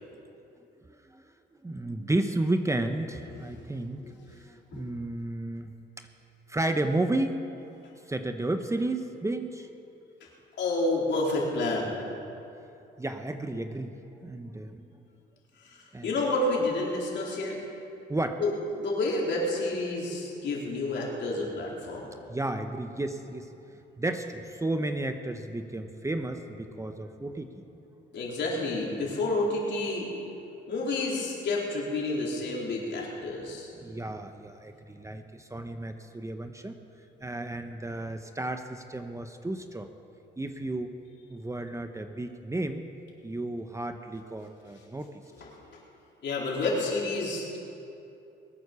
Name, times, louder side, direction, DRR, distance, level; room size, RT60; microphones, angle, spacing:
voice 1, 1.6-4.0 4.3-5.7 6.5-7.4 8.1-9.7 13.0-14.8 15.9-16.1 18.1-18.4 22.3-23.5 24.0-27.5 33.8-36.7 37.2-39.9 40.4-40.9 41.3-42.8 43.2-45.1, right 2 dB, 15° right, 7 dB, 0.9 m, -32 dB
voice 2, 3.3-3.6 4.0-4.1 4.7-4.9 10.6-11.9 15.6-17.6 18.4-18.5 18.8-22.1 28.1-30.1 30.7-33.7 45.4-45.8 46.2-47.6, left 2 dB, 65° left, -3 dB, 4.2 m, -29 dB
21.5 x 9.4 x 6.9 m, 2.8 s
cardioid pair, 90°, 20 cm